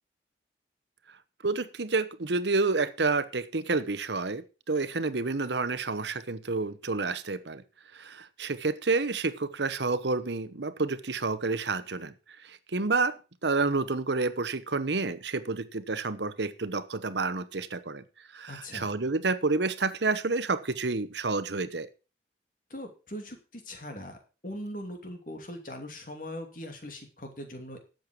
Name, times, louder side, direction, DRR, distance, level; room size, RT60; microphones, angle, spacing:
voice 1, 1.4-7.6 7.9-12.1 12.4-18.0 18.3-21.9, right 3 dB, 75° right, 13 dB, 1.1 m, -29 dB
voice 2, 18.5-18.9 22.7-24.2 24.4-27.8, left 1 dB, 50° left, 5 dB, 2.7 m, -40 dB
12.0 x 7.8 x 6.1 m, 0.33 s
head